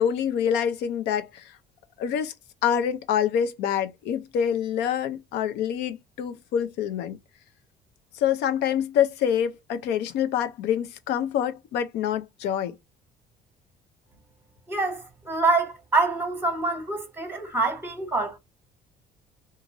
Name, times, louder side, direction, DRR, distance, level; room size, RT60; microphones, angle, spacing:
voice 1, 0.0-1.5 2.0-2.3 2.6-7.2 8.1-12.8, left 9 dB, 85° left, 0.6 m, -26 dB
voice 2, 14.7-18.4, right 3 dB, 10° right, 1.2 m, -26 dB
2.5 x 2.5 x 2.9 m
cardioid pair, 110°, 17 cm